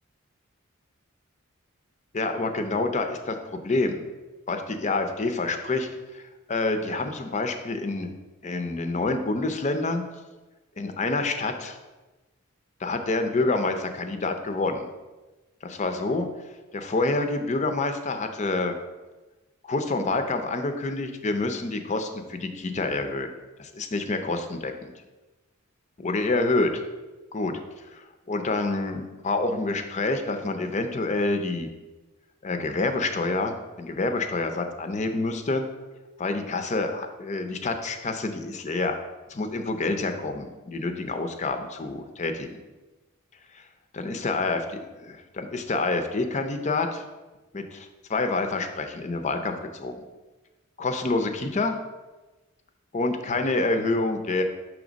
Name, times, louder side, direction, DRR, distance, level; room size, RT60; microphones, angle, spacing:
voice 1, 2.1-4.0 4.5-5.9 6.1-6.2 6.5-8.1 8.4-10.0 10.8-11.8 12.8-14.9 15.6-16.3 16.7-18.8 19.6-23.3 23.6-24.9 26.0-26.8 27.3-27.5 27.9-31.7 32.4-35.7 36.2-38.9 39.3-42.5 43.9-44.7 45.0-47.0 47.5-49.9 50.8-51.8 52.9-54.4, left 3 dB, 35° left, 6 dB, 0.5 m, -27 dB
6.2 x 3.2 x 5.1 m, 1.2 s
head